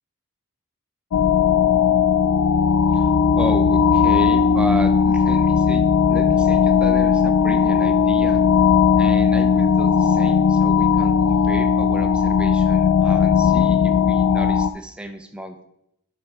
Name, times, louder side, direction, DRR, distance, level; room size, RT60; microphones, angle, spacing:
sound 1, 1.1-14.7, left 6 dB, 70° left, 0.3 m, -17 dB
voice 1, 2.9-5.8 6.1-8.4 9.0-15.6, right 1 dB, 5° right, 6 dB, 0.6 m, -33 dB
10.0 x 6.0 x 3.4 m, 0.79 s
head